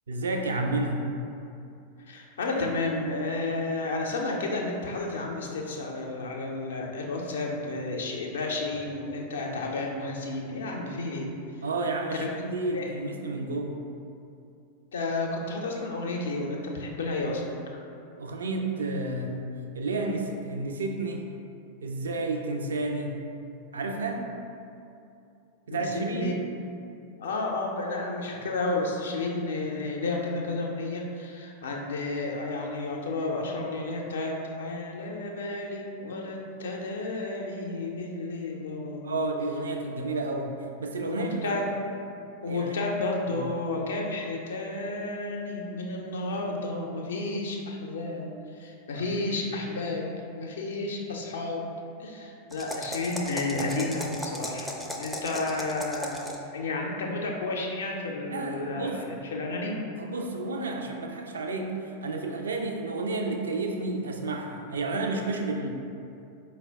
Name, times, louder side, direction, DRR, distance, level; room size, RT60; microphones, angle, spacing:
voice 1, 0.1-1.0 11.6-13.8 18.2-19.4 19.7-21.2 21.8-23.1 23.7-24.2 25.7-26.4 39.0-40.5 40.8-41.6 42.5-42.7 43.3-43.5 48.9-49.2 58.3-59.0 60.0-65.7, right 2 dB, 70° right, 3 dB, 0.3 m, -31 dB
voice 2, 2.0-11.3 12.1-12.9 14.9-17.4 17.7-17.8 25.7-26.3 27.2-39.3 41.1-41.7 42.4-51.7 52.0-56.2 56.5-59.8, left 2 dB, 65° left, 0 dB, 0.5 m, -32 dB
sound 1, 52.5-56.5, left 1 dB, 5° left, 0.4 m, -36 dB
4.3 x 2.2 x 3.3 m, 2.6 s
figure-of-eight pair, 90°, 0 cm